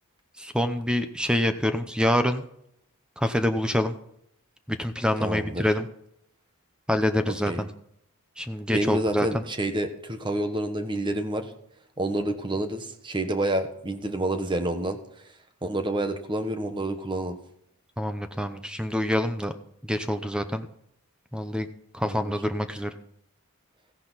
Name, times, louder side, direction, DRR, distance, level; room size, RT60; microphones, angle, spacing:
voice 1, 0.4-2.4 3.2-3.9 4.8-5.9 6.9-7.7 8.4-9.4 18.0-19.5 19.8-20.7 21.3-21.7 21.9-22.9, left 1 dB, 5° right, 9 dB, 0.8 m, -26 dB
voice 2, 5.2-5.7 7.3-7.6 8.7-11.5 12.0-15.0 15.6-17.4 22.0-22.3, right 1 dB, 20° right, 8 dB, 1.3 m, -28 dB
15.0 x 10.5 x 4.1 m, 0.73 s
head